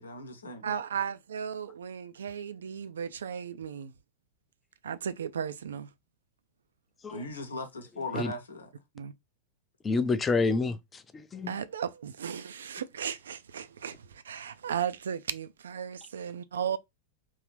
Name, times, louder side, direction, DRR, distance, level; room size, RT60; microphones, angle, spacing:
voice 1, 0.0-0.7 7.1-8.7, left 2 dB, 75° left, 0.9 m, -38 dB
voice 2, 0.6-3.9 4.8-5.9 8.1-8.2 8.9-9.1 11.5-16.8, right 8 dB, 65° right, 0.4 m, -35 dB
voice 3, 9.8-11.5, left 4 dB, 20° left, 0.5 m, -28 dB
3.7 x 2.9 x 3.1 m
figure-of-eight pair, 90°, 0 cm